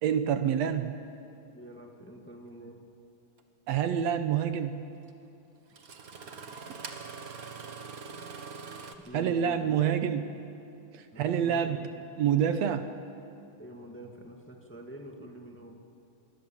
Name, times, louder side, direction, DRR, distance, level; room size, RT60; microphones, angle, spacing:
voice 1, 0.0-1.0 3.7-4.8 9.1-10.4 11.2-11.8 12.2-12.9, right 8 dB, 70° right, 9 dB, 1.9 m, -27 dB
voice 2, 1.5-2.8 9.0-9.8 11.1-11.9 13.6-15.8, right 1 dB, 5° left, 2 dB, 1.4 m, -46 dB
Engine starting, 3.4-3.5 5.1-5.2 5.7-8.9, right 5 dB, 45° right, 1.2 m, -43 dB
24.0 x 23.0 x 7.3 m, 2.9 s
omnidirectional pair, 3.3 m